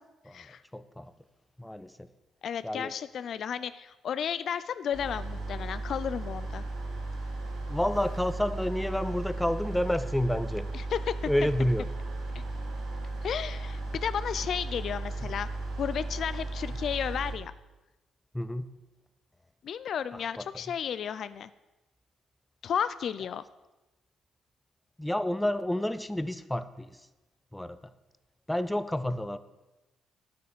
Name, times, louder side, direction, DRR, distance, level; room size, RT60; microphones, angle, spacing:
voice 1, 0.3-1.1 1.6-2.1 2.6-2.9 7.7-10.7 11.2-11.9 15.2-15.3 18.3-18.7 20.1-20.4 25.0-27.0 27.5-27.8 28.5-29.4, left 1 dB, 5° left, 13 dB, 0.6 m, -30 dB
voice 2, 2.4-6.6 10.7-11.1 13.2-15.5 15.8-17.5 19.6-21.5 22.6-23.4, left 8 dB, 60° left, 14 dB, 0.5 m, -33 dB
sound 1, 4.9-17.3, right 2 dB, 85° right, 3.6 m, -35 dB
9.4 x 8.9 x 6.8 m, 1.1 s
cardioid pair, 90°, 0 cm